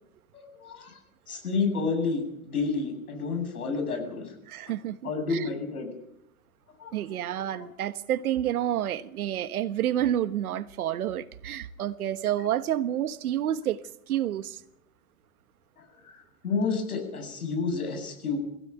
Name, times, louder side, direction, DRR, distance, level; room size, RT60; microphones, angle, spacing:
voice 1, 0.3-1.0 1.3-4.3 5.0-5.9 6.8-7.0 7.5-7.7 15.8-15.9 16.1-18.4, left 4 dB, 85° left, 7.9 m, -30 dB
voice 2, 4.5-5.5 6.9-14.6, right 11 dB, 80° right, 1.4 m, -29 dB
22.5 x 16.5 x 9.3 m
hypercardioid pair, 110°, 43 cm